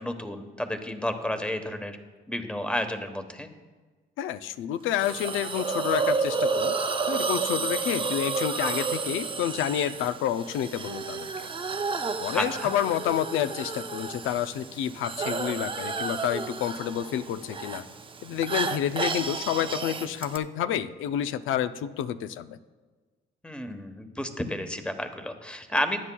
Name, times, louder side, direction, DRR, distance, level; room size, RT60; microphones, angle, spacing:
voice 1, 0.0-2.0 2.3-3.5 12.3-12.7 23.4-26.0, left 1 dB, 5° left, 7 dB, 1.1 m, -31 dB
voice 2, 4.2-6.8 7.1-11.5 12.2-17.8 18.2-22.6, left 10 dB, 85° left, 12 dB, 0.5 m, -29 dB
Hiss, 5.0-20.4, right 4 dB, 25° right, 0.6 m, -31 dB
18.5 x 9.9 x 2.3 m, 1.3 s
cardioid pair, 90°, 20 cm